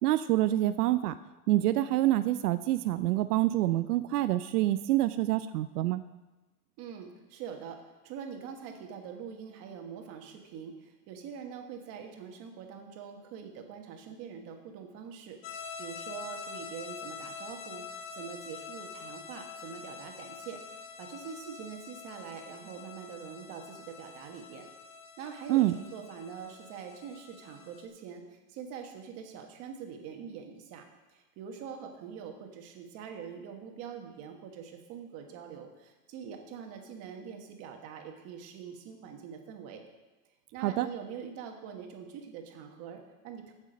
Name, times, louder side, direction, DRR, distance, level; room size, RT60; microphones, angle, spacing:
voice 1, 0.0-1.1 1.5-6.0 25.5-25.7 40.6-40.9, right 15 dB, 80° right, 11 dB, 0.6 m, -26 dB
voice 2, 6.8-17.9 18.1-20.6 21.0-24.7 25.2-39.8 40.5-43.5, right 7 dB, 30° right, 3 dB, 1.4 m, -44 dB
sound 1, 15.4-27.9, left 5 dB, 40° left, 1.1 m, -45 dB
15.0 x 6.3 x 5.1 m, 1.1 s
supercardioid pair, 165°, 45 cm